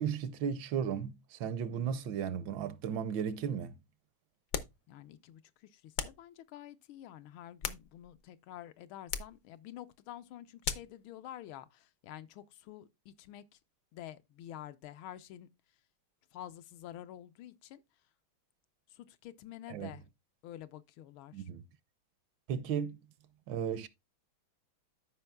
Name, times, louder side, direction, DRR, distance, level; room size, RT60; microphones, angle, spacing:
voice 1, 0.0-3.8 19.7-19.9 21.3-21.6 22.5-23.0 23.5-23.9, right 8 dB, 75° right, 1.3 m, -35 dB
sound 1, 4.5-4.8 6.0-6.3 7.3-8.2 9.1-9.4 10.6-11.0, left 7 dB, 70° left, 0.8 m, -38 dB
voice 2, 4.9-13.6 13.9-15.5 16.3-17.8 18.9-20.0 20.4-21.5, left 12 dB, 85° left, 1.5 m, -49 dB
13.5 x 5.2 x 2.3 m
omnidirectional pair, 2.3 m